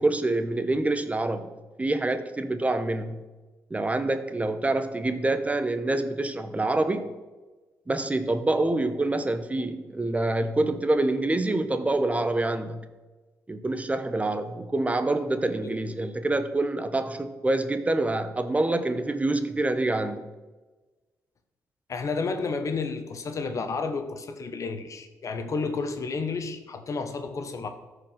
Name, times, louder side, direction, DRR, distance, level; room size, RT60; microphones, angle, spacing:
voice 1, 0.0-1.5 1.8-3.2 3.7-7.1 7.9-12.8 13.5-20.3, right 2 dB, 20° right, 10 dB, 1.0 m, -26 dB
voice 2, 21.9-27.7, left 4 dB, 55° left, 8 dB, 1.2 m, -31 dB
13.5 x 5.0 x 5.9 m, 1.2 s
supercardioid pair, 55°, 6 cm